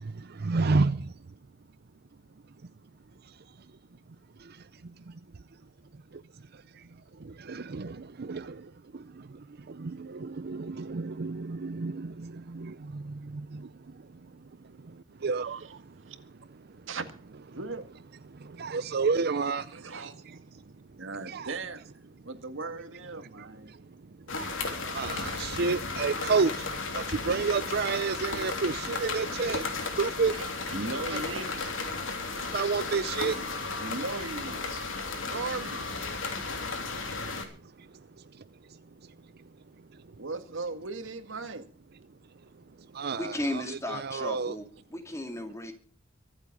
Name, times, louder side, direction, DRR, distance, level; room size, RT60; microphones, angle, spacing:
voice 1, 0.4-1.0 7.5-7.9 8.3-8.4 9.8-9.9 10.2-12.1 15.2-15.6 18.6-19.6 21.3-21.5 24.4-24.5 24.9-26.5 26.9-29.6 30.0-30.3 31.1-31.2 32.5-33.4 43.0-44.6, right 4 dB, 55° right, 0.6 m, -29 dB
voice 2, 17.5-17.8 19.7-20.1 21.0-21.8 22.2-23.7 30.7-31.6 33.8-34.7 35.3-35.8 40.2-41.7, right 3 dB, 75° right, 1.9 m, -37 dB
sound 1, 24.3-37.4, left 3 dB, 80° left, 3.4 m, -34 dB
voice 3, 43.2-44.6 44.9-45.7, left 1 dB, 15° left, 2.4 m, -34 dB
24.0 x 8.1 x 5.3 m
head